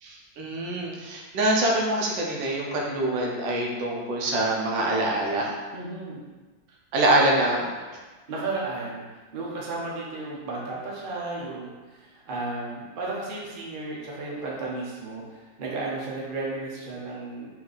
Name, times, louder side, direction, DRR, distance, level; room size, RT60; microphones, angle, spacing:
voice 1, 0.0-5.5 6.9-7.7, right 1 dB, 75° right, -1 dB, 1.4 m, -25 dB
voice 2, 5.7-6.2 8.3-9.0 9.3-17.5, right 3 dB, 50° right, -4 dB, 0.6 m, -33 dB
4.4 x 2.7 x 3.9 m, 1.3 s
omnidirectional pair, 2.1 m